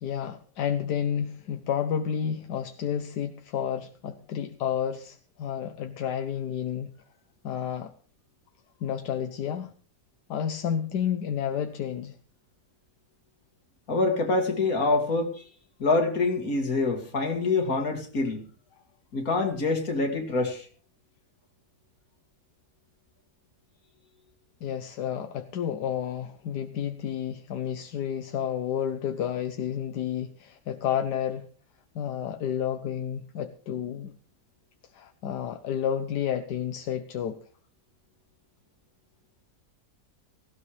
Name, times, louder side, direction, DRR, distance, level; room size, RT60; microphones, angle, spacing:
voice 1, 0.0-6.9 7.4-7.9 8.8-9.7 10.3-12.1 24.6-31.5 31.9-34.1 34.9-37.4, left 9 dB, 80° left, 7 dB, 1.4 m, -30 dB
voice 2, 13.9-15.4 15.8-18.5 19.1-20.7, left 3 dB, 60° left, 4 dB, 2.8 m, -25 dB
17.5 x 16.5 x 3.3 m, 0.40 s
omnidirectional pair, 1.7 m